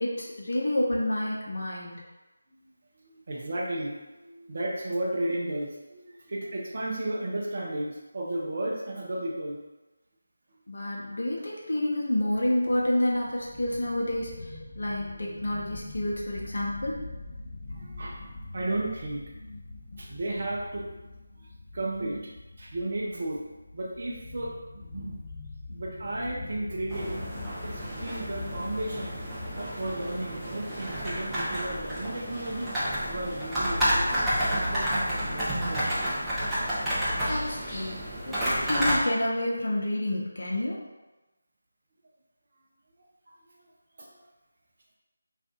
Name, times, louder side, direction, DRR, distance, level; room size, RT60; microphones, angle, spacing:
voice 1, 0.0-2.0 10.7-17.1 37.3-40.8, left 1 dB, 55° left, -3 dB, 0.6 m, -29 dB
voice 2, 3.0-9.6 15.0-15.4 17.7-18.2 18.5-19.2 20.0-21.0 21.4-21.5 21.7-22.3 22.6-23.4 23.7-25.2 25.7-27.3 27.6-29.2 29.6-34.1 34.5-36.2 44.0-44.2, right 1 dB, 45° right, -3 dB, 0.6 m, -34 dB
sound 1, 12.2-30.2, left 2 dB, 20° left, 1.1 m, -43 dB
sound 2, 26.9-39.0, equal, 5° right, 0.6 m, -30 dB
2.5 x 2.4 x 3.6 m, 1.1 s
figure-of-eight pair, 160°, 0 cm